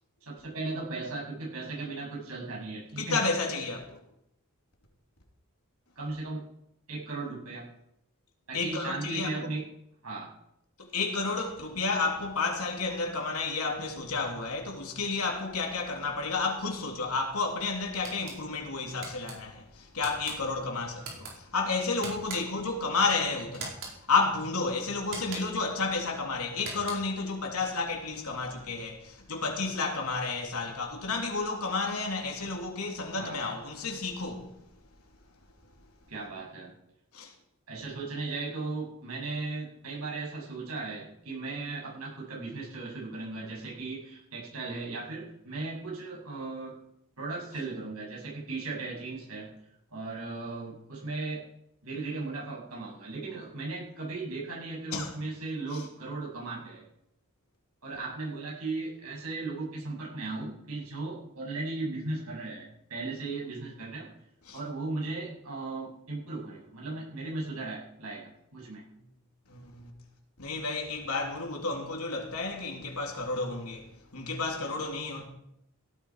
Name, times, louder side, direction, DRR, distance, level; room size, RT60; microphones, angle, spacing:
voice 1, 0.2-3.2 6.0-6.4 6.9-7.7 8.5-9.6 10.0-10.3 33.2-33.4 36.1-36.7 37.7-46.7 47.2-49.5 49.9-51.4 51.8-56.9 57.8-64.1 64.5-68.8, right 3 dB, 75° right, 7.7 m, -37 dB
voice 2, 3.0-4.0 8.5-9.5 10.8-34.6 37.1-37.3 54.9-55.2 55.7-55.8 64.4-64.6 69.0-69.1 69.5-69.9 70.4-75.3, left 3 dB, 80° left, 3.1 m, -31 dB
sound 1, 18.0-18.4 19.0-19.4 20.0-20.4 21.0-21.3 22.0-22.6 23.5-24.0 25.0-25.6 26.5-27.2, right 3 dB, 60° right, 4.8 m, -41 dB
17.0 x 12.5 x 4.9 m
head